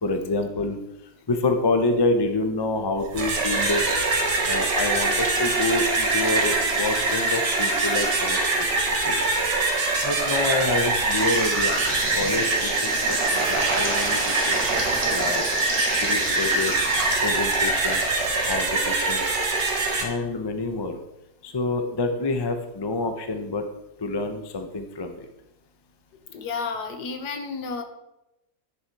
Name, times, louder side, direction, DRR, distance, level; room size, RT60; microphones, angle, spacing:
voice 1, 0.0-0.8 1.3-3.9 4.4-8.7 9.0-9.2 10.0-11.8 12.1-15.4 16.0-16.8 17.2-18.0 18.4-19.4 20.0-21.0 21.4-23.7 24.0-25.3, left 2 dB, 25° left, 6 dB, 0.5 m, -27 dB
sound 1, 3.0-20.0, right 3 dB, 80° right, 2.1 m, -23 dB
sound 2, 11.1-18.5, right 2 dB, 35° right, 1.9 m, -34 dB
voice 2, 26.3-27.8, left 4 dB, 75° left, 7 dB, 1.6 m, -31 dB
9.4 x 7.0 x 4.7 m, 0.90 s
omnidirectional pair, 1.8 m